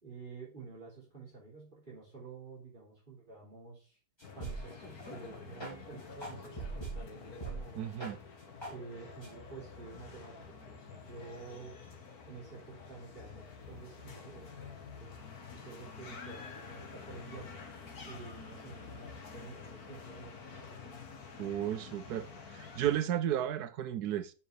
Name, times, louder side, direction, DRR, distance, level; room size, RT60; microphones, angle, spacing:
voice 1, 0.0-4.0 4.3-8.0 8.6-11.8 12.3-15.1 15.5-17.5 18.0-21.1, right 4 dB, 30° right, 3.7 m, -50 dB
sound 1, 4.2-23.0, left 5 dB, 65° left, 2.0 m, -49 dB
sound 2, 4.2-4.7 5.0-5.1 5.6-5.7 6.2-7.0 7.4-7.6 8.0-8.1 8.6-8.7 9.2-9.3, right 3 dB, 15° left, 3.4 m, -40 dB
voice 2, 7.8-8.2 21.4-22.3 22.5-24.3, right 11 dB, 75° right, 1.1 m, -33 dB
7.0 x 5.8 x 6.7 m
omnidirectional pair, 1.8 m